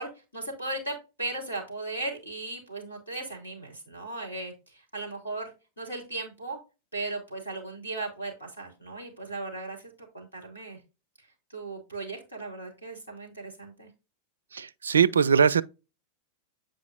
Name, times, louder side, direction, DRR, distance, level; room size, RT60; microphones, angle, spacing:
voice 1, 0.0-6.6 6.9-10.8 11.5-13.9, right 2 dB, 85° left, 3.0 m, -37 dB
voice 2, 14.5-15.6, right 6 dB, 70° right, 0.3 m, -21 dB
8.2 x 5.1 x 2.5 m
figure-of-eight pair, 90°, 0 cm